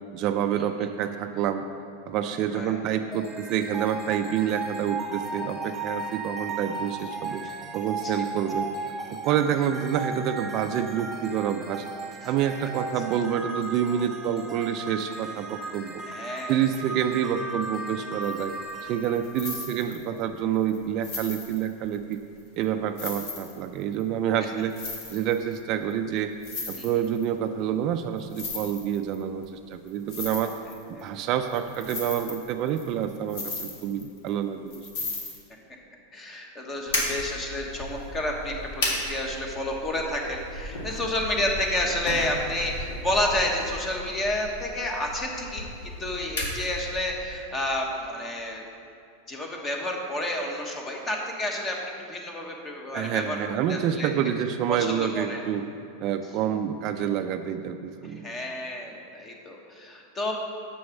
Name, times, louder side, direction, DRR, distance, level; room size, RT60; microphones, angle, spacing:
voice 1, 0.1-1.6 2.1-7.4 7.7-8.7 9.1-11.8 12.2-16.0 16.5-18.5 18.8-22.2 22.6-24.7 25.1-26.3 26.7-30.5 30.9-35.0 52.9-55.6 56.0-58.3, right 9 dB, 40° right, 7 dB, 0.4 m, -28 dB
sound 1, 3.1-20.3, right 3 dB, 10° right, 0.9 m, -36 dB
voice 2, 16.1-16.6 26.7-26.8 31.0-31.3 36.1-45.7 46.0-48.6 49.3-53.4 53.7-54.1 54.7-55.4 58.2-60.3, left 1 dB, 20° left, 1 dB, 1.1 m, -30 dB
sound 2, 18.2-18.4 18.7-20.2 20.7-20.8 21.0-22.1 22.6-22.7 23.0-24.0 24.6-25.6 25.9-26.0 26.2-27.2 28.2-29.2 29.4-29.5 29.9-31.2 31.5-34.3 34.7-35.4, left 4 dB, 55° left, 1.8 m, -37 dB
sound 3, 36.9-47.2, left 1 dB, 75° left, 1.8 m, -34 dB
6.3 x 6.2 x 7.1 m, 2.5 s
supercardioid pair, 145°, 0 cm